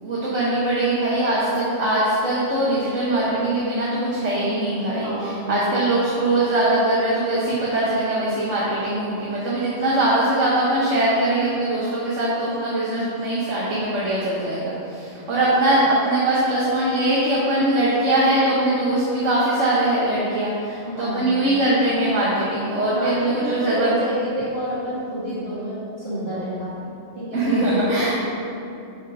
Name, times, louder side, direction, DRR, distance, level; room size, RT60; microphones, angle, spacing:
voice 1, 0.0-24.1 27.3-28.1, right 1 dB, 65° right, -8 dB, 1.7 m, -21 dB
voice 2, 3.4-3.7 4.9-5.8 20.8-21.3 22.9-26.7 27.1-28.1, right 1 dB, 50° right, -11 dB, 2.3 m, -29 dB
8.0 x 5.5 x 4.9 m, 2.7 s
omnidirectional pair, 1.4 m